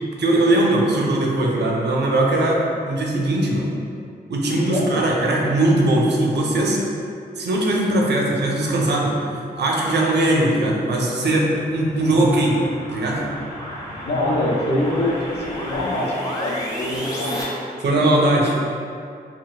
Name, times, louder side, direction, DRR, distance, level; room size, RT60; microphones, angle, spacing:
voice 1, 0.2-3.7 4.3-6.8 7.4-9.1 9.6-12.5 12.9-13.2 17.8-18.6, right 1 dB, 85° right, -2 dB, 0.5 m, -20 dB
sound 1, 11.1-17.4, equal, 20° left, 1.1 m, -33 dB
voice 2, 14.0-17.4, left 1 dB, 80° left, -2 dB, 0.5 m, -24 dB
4.0 x 2.0 x 2.4 m, 2.4 s
cardioid pair, 70°, 17 cm